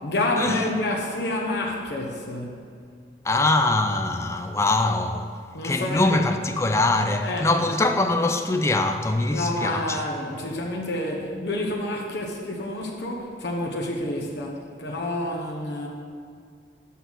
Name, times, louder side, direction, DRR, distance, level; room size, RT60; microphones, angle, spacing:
voice 1, 0.0-2.6 5.5-6.3 7.2-7.5 9.3-15.9, left 1 dB, 75° left, 0.8 m, -28 dB
voice 2, 3.2-5.3 5.6-10.0, left 2 dB, 15° left, 0.3 m, -23 dB
5.6 x 5.6 x 6.2 m
head